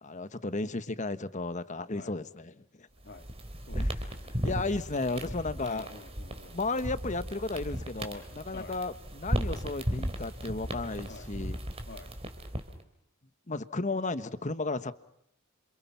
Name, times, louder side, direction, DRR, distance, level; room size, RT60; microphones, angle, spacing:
voice 1, 0.0-2.9 3.7-4.0 4.4-5.9 6.5-11.6 13.5-14.9, left 3 dB, 35° left, 13 dB, 1.3 m, -34 dB
sound 1, 3.0-12.8, equal, 30° right, 3.1 m, -36 dB
voice 2, 3.7-4.4 5.6-6.6 8.5-8.8 11.1-11.3 11.9-12.1, left 3 dB, 50° left, 8 dB, 2.1 m, -48 dB
28.5 x 27.5 x 5.9 m, 0.74 s
head